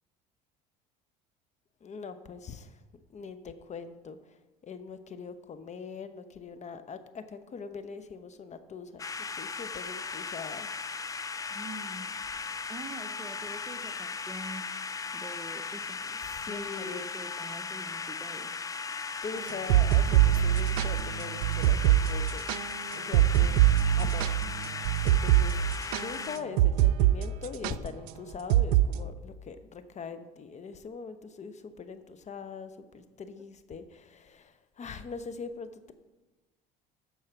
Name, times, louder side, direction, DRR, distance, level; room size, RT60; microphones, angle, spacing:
voice 1, 1.8-2.8 3.1-10.7 16.0-17.0 19.2-22.4 22.9-23.6 23.9-24.7 25.0-25.6 26.0-35.9, left 5 dB, 35° left, 10 dB, 0.9 m, -42 dB
sound 1, 9.0-26.4, left 5 dB, 20° left, 0.5 m, -37 dB
voice 2, 11.5-12.1 12.7-14.7 15.1-16.0 16.5-18.5 24.1-24.5, right 1 dB, 15° right, 8 dB, 0.8 m, -45 dB
sound 2, 19.5-27.2 27.4-27.7 28.5-28.9, right 13 dB, 80° right, 0.4 m, -23 dB
14.0 x 4.8 x 5.9 m, 1.1 s
hypercardioid pair, 80°, 19 cm